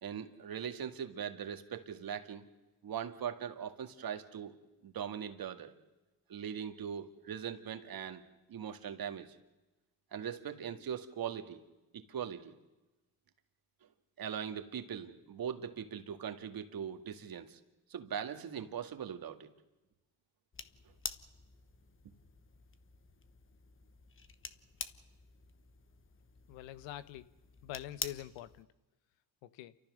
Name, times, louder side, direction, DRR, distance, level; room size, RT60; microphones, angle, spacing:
voice 1, 0.0-2.4 2.8-4.5 4.8-5.7 6.3-8.2 8.5-9.4 10.1-11.6 11.9-12.5 14.2-17.6 17.9-19.5, right 8 dB, 50° right, 7 dB, 2.0 m, -40 dB
sound 1, 20.5-28.6, left 5 dB, 30° left, 1.2 m, -47 dB
voice 2, 26.5-27.3 27.6-28.7 29.4-29.8, left 13 dB, 85° left, 15 dB, 1.0 m, -45 dB
29.0 x 13.5 x 6.5 m, 1.1 s
supercardioid pair, 70°, 44 cm